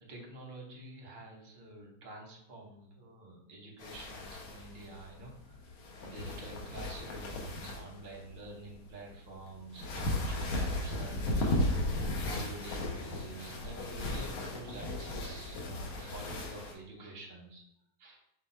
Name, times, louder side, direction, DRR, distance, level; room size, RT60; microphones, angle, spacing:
voice 1, 0.0-5.3 6.0-11.9 12.2-17.6 18.0-18.2, right 2 dB, 45° right, -1 dB, 0.6 m, -48 dB
sound 1, 3.8-16.7, left 1 dB, 90° left, 1.7 m, -36 dB
5.0 x 2.2 x 4.3 m, 0.78 s
omnidirectional pair, 2.2 m